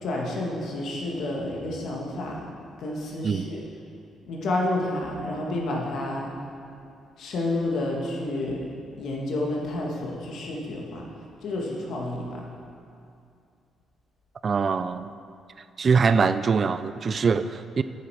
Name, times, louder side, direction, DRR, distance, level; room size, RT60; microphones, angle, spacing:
voice 1, 0.0-2.4 2.8-3.6 4.3-6.3 7.2-8.6 9.0-11.0 11.4-12.4, left 2 dB, 70° left, -2 dB, 1.9 m, -30 dB
voice 2, 14.4-15.1 15.8-17.8, right 5 dB, 45° right, 12 dB, 0.3 m, -23 dB
9.9 x 8.0 x 4.9 m, 2.5 s
cardioid pair, 90°, 0 cm